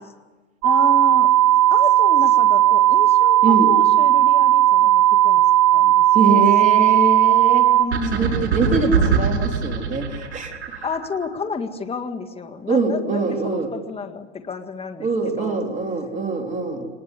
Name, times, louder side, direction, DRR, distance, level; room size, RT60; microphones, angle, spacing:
voice 1, 0.6-1.3 1.7-6.5 7.7-8.3 10.8-15.1 15.4-15.6, left 5 dB, 15° left, 7 dB, 1.8 m, -31 dB
sound 1, 0.6-7.8, right 13 dB, 45° right, 3.4 m, -15 dB
voice 2, 6.1-7.7 8.1-10.8 12.7-13.7 15.0-16.9, right 3 dB, 20° right, 3 dB, 3.7 m, -23 dB
sound 2, 7.9-11.3, right 6 dB, 85° right, 6.0 m, -22 dB
24.0 x 20.5 x 8.3 m, 1.2 s
supercardioid pair, 120°, 33 cm